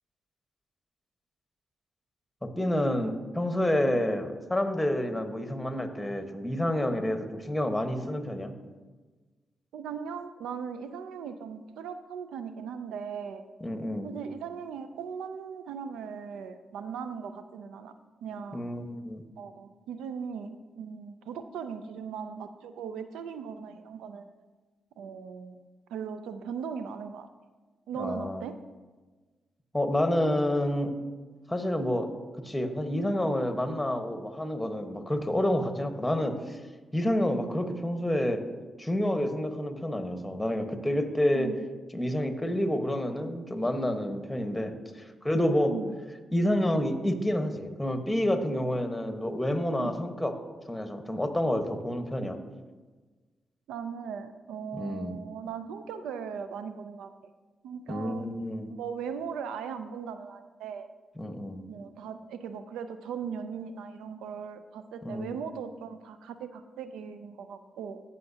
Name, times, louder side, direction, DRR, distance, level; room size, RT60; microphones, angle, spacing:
voice 1, 2.4-8.5 13.6-14.1 18.5-19.2 28.0-28.4 29.7-30.9 31.5-32.1 32.4-36.6 36.9-38.4 38.8-41.5 41.9-45.7 46.3-50.3 50.7-52.4 54.7-55.1 57.9-58.7 61.2-61.6 65.0-65.3, left 1 dB, 10° left, 6 dB, 1.2 m, -29 dB
voice 2, 9.7-13.4 14.0-17.9 18.2-18.6 19.4-24.3 25.0-25.6 25.9-27.3 27.9-28.6 31.5-31.6 41.3-41.6 45.7-46.0 49.8-50.0 53.7-57.1 57.6-58.3 58.7-60.9 61.7-68.0, right 6 dB, 85° right, 10 dB, 0.3 m, -38 dB
14.5 x 5.6 x 2.8 m, 1.3 s
supercardioid pair, 45°, 0 cm